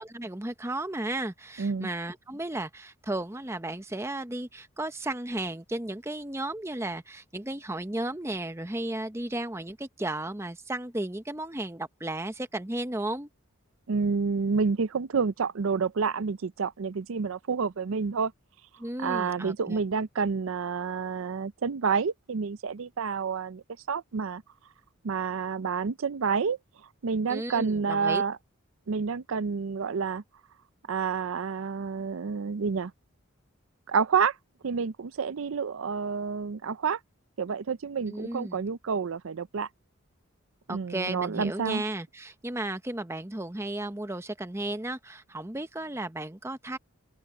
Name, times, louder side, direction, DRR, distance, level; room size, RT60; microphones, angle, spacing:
voice 1, 0.0-13.3 18.8-19.8 27.3-28.2 38.1-38.6 40.7-46.8, right 1 dB, 10° right, 0.8 m, -34 dB
voice 2, 1.6-1.9 13.9-18.3 19.0-24.4 25.0-26.6 27.0-28.4 28.9-30.2 30.9-32.9 33.9-34.4 34.6-37.0 37.4-39.7 40.7-41.8, right 5 dB, 75° right, 0.5 m, -29 dB
open air
head